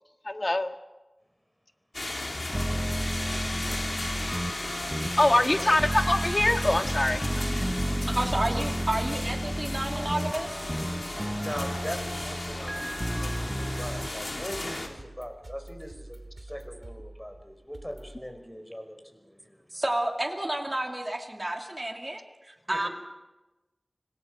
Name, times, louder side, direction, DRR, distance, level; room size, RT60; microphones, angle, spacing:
voice 1, 0.2-0.8 5.2-7.2, left 1 dB, 45° left, 6 dB, 1.7 m, -23 dB
sound 1, 1.9-14.9, left 2 dB, 70° left, 3.1 m, -35 dB
sound 2, 2.5-14.1, equal, 10° right, 1.1 m, -32 dB
voice 2, 5.1-5.8 11.4-19.8 22.7-22.9, equal, 10° left, 5 dB, 4.8 m, -41 dB
voice 3, 8.1-10.7 19.7-22.9, right 1 dB, 35° right, 1 dB, 2.7 m, -31 dB
sound 3, 10.4-18.2, right 2 dB, 65° right, 2.4 m, -47 dB
26.0 x 18.5 x 6.6 m, 1.1 s
wide cardioid pair, 40°, 0 cm